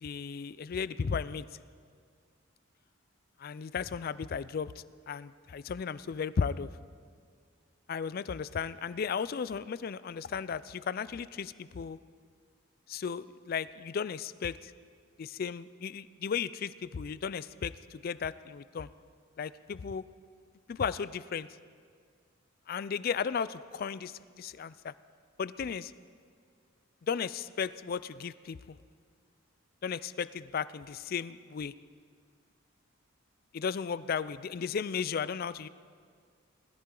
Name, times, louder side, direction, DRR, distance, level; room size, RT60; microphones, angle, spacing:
voice 1, 0.0-1.5 3.4-4.7 5.1-6.7 7.9-12.0 12.9-14.7 15.2-18.9 19.4-20.0 20.7-21.5 22.7-24.9 25.4-25.9 27.1-28.8 29.8-31.7 33.5-35.7, left 6 dB, 45° left, 17 dB, 0.3 m, -35 dB
20.5 x 13.5 x 3.8 m, 2.1 s
head